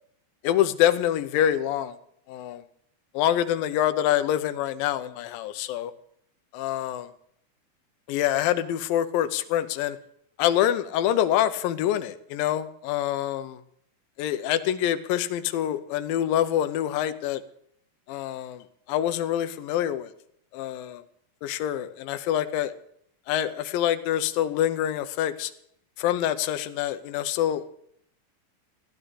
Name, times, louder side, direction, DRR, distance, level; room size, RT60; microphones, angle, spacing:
voice 1, 0.4-2.0 2.3-2.6 3.1-5.9 6.5-7.1 8.1-10.0 10.4-13.6 14.2-17.4 18.1-20.1 20.5-21.0 21.4-22.7 23.3-25.5 26.0-27.6, left 11 dB, 80° left, 10 dB, 2.4 m, -26 dB
15.0 x 10.0 x 8.1 m, 0.69 s
omnidirectional pair, 4.2 m